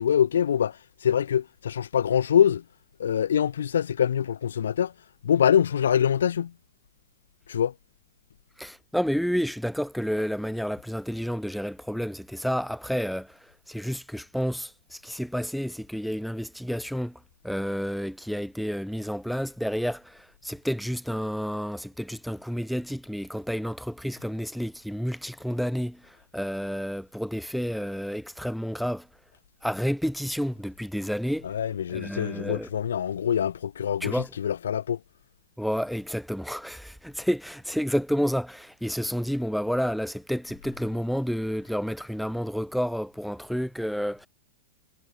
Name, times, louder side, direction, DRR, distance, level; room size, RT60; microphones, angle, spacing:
voice 1, 0.0-2.6 3.0-4.9 5.2-6.5 7.5-7.7 31.4-35.0, left 9 dB, 85° left, 0.8 m, -24 dB
voice 2, 8.6-29.1 29.6-31.5 31.9-32.7 34.0-34.3 35.6-44.3, equal, ahead, 0.3 m, -30 dB
hypercardioid pair, 130°, 0 cm